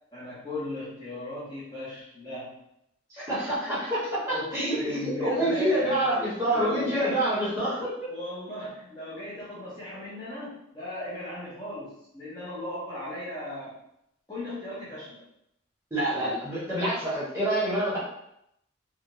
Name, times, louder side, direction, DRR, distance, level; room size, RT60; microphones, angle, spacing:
voice 1, 0.1-2.6 4.3-7.7 8.1-13.8 14.3-15.2, left 1 dB, 20° left, -9 dB, 0.7 m, -37 dB
voice 2, 3.1-4.0 4.3-8.1 15.9-18.0, right 1 dB, 15° right, -9 dB, 0.8 m, -27 dB
2.4 x 2.0 x 2.9 m, 0.79 s
head